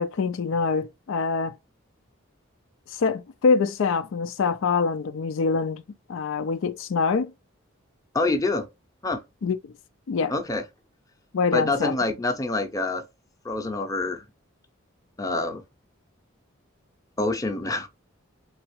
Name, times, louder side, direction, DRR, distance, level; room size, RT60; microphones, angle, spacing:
voice 1, 0.0-1.5 2.9-5.8 6.1-7.3 9.4-9.7 10.1-10.3 11.3-11.9, left 5 dB, 75° left, 0.4 m, -25 dB
voice 2, 8.1-8.7 9.0-9.2 10.3-10.6 11.5-13.0 13.4-14.2 15.2-15.6 17.2-17.9, left 2 dB, 15° left, 0.6 m, -26 dB
3.9 x 3.5 x 3.0 m
head